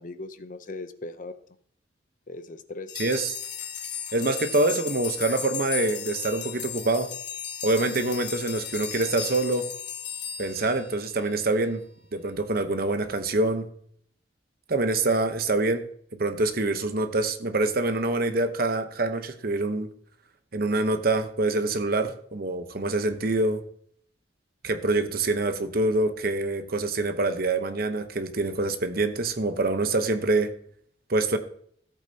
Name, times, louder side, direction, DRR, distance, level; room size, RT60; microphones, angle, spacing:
voice 1, 0.0-1.4 2.3-2.9, left 2 dB, 45° left, 0.6 m, -38 dB
sound 1, 2.9-11.4, left 8 dB, 60° left, 1.7 m, -36 dB
voice 2, 3.0-3.3 4.1-7.1 7.6-9.7 10.4-11.8 12.1-13.7 14.7-19.9 20.5-23.6 24.6-30.5 31.1-31.4, right 2 dB, 50° right, 0.9 m, -25 dB
14.5 x 8.4 x 2.8 m
head